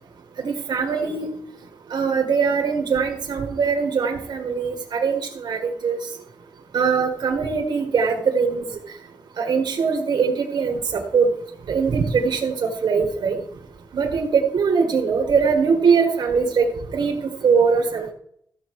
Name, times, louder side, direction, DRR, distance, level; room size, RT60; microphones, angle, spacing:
voice 1, 0.4-1.3 1.9-6.0 6.7-8.8 9.4-11.3 11.7-13.4 13.9-16.7 16.9-17.2 17.4-18.1, right 5 dB, 65° right, 1 dB, 1.6 m, -21 dB
14.0 x 7.0 x 4.8 m, 0.69 s
wide cardioid pair, 155°, 8 cm